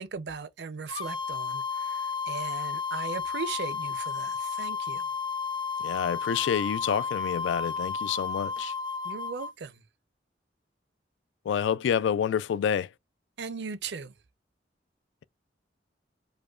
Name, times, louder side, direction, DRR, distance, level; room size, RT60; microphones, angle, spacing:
voice 1, 0.0-5.1 9.0-9.8 13.4-14.1, right 5 dB, 65° right, 0.5 m, -38 dB
sound 1, 0.9-9.5, left 5 dB, 25° left, 0.6 m, -32 dB
voice 2, 5.8-8.7 11.5-12.9, left 8 dB, 85° left, 0.3 m, -28 dB
5.0 x 2.2 x 2.3 m
head